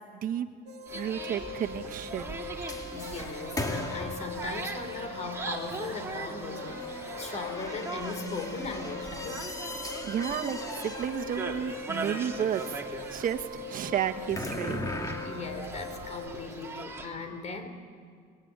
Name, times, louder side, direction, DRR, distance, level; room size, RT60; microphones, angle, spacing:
sound 1, 0.7-16.3, left 2 dB, 80° right, 1.5 m, -42 dB
sound 2, 0.9-17.1, right 3 dB, 15° right, 3.4 m, -41 dB
voice 1, 0.9-2.4 10.0-12.8 13.1-14.8, right 9 dB, 55° right, 5 dB, 1.4 m, -32 dB
sound 3, 1.4-16.8, left 2 dB, 20° left, 2.1 m, -40 dB
voice 2, 2.9-9.5 15.2-17.7, left 3 dB, 45° left, 8 dB, 4.0 m, -38 dB
25.0 x 22.0 x 9.0 m, 2.1 s
cardioid pair, 110°, 17 cm